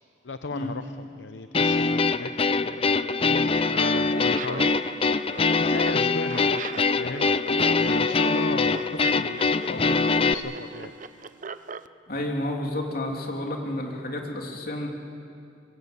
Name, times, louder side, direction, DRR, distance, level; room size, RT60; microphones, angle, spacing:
voice 1, 0.2-7.3 7.8-10.9, left 3 dB, 70° left, 9 dB, 0.7 m, -37 dB
sound 1, 1.5-10.3, left 4 dB, 30° left, 0.6 m, -23 dB
Laughter, 3.5-11.9, right 5 dB, 45° right, 0.6 m, -38 dB
voice 2, 12.1-14.9, left 1 dB, 50° left, 1 dB, 3.3 m, -30 dB
23.5 x 21.0 x 8.2 m, 2.5 s
head